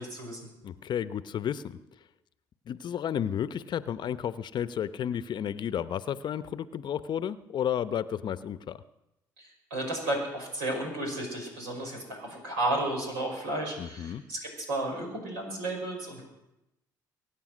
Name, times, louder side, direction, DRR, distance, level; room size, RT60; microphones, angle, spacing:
voice 1, 0.0-0.5 9.4-16.2, right 1 dB, 80° right, 1 dB, 5.5 m, -33 dB
voice 2, 0.6-1.8 2.7-8.8 13.8-14.2, left 9 dB, 50° left, 14 dB, 0.7 m, -32 dB
23.5 x 9.0 x 6.3 m, 0.90 s
hypercardioid pair, 60°, 9 cm